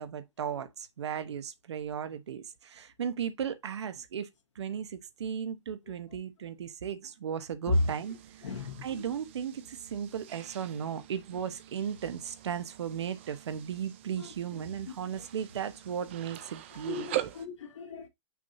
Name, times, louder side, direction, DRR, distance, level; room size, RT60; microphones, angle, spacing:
voice 1, 0.0-4.3 4.5-8.2 8.4-8.5 8.8-17.3, right 8 dB, 65° right, 1.0 m, -36 dB
sound 1, 7.7-17.5, right 13 dB, 25° right, 0.4 m, -43 dB
voice 2, 8.4-8.8 16.9-18.1, left 2 dB, 90° left, 2.0 m, -32 dB
6.1 x 2.8 x 5.6 m
hypercardioid pair, 175°, 15 cm